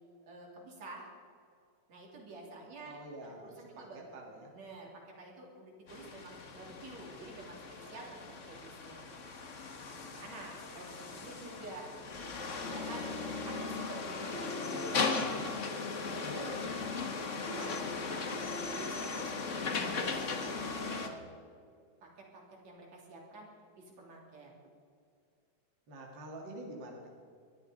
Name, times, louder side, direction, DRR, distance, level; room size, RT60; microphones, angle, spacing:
voice 1, 0.2-1.1 1.9-4.1 4.4-4.9 5.2-9.0 9.9-15.1 15.8-16.9 17.3-17.9 18.2-18.3 18.8-20.5 20.8-21.2 22.0-23.5 23.8-24.5, right 2 dB, 60° right, -1 dB, 4.1 m, -49 dB
voice 2, 2.8-4.5 14.7-15.0 16.2-16.6 17.0-17.3 25.9-27.1, right 1 dB, 40° right, 1 dB, 2.3 m, -46 dB
sound 1, 5.9-21.1, left 4 dB, 60° left, 0.7 m, -37 dB
21.0 x 12.5 x 5.1 m, 2.3 s
omnidirectional pair, 3.4 m